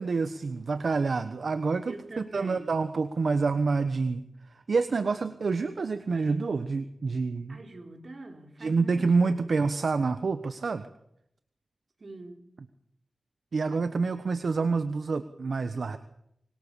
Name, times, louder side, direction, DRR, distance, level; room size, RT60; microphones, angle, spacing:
voice 1, 0.0-4.2 4.5-7.6 8.6-10.9 13.5-16.0, right 4 dB, 70° right, 11 dB, 1.2 m, -27 dB
voice 2, 1.9-2.8 7.5-9.6 12.0-12.5, right 2 dB, 50° right, 5 dB, 4.1 m, -44 dB
25.5 x 21.5 x 7.1 m, 0.78 s
wide cardioid pair, 85°, 0 cm